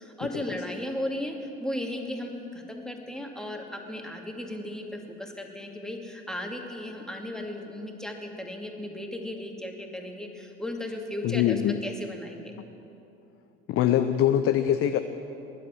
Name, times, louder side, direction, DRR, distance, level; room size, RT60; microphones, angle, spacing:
voice 1, 0.0-12.5, left 1 dB, ahead, 1 dB, 2.3 m, -36 dB
voice 2, 11.2-11.8 13.7-15.0, left 11 dB, 45° left, 8 dB, 0.7 m, -23 dB
20.0 x 11.0 x 6.1 m, 2.9 s
figure-of-eight pair, 60°, 30 cm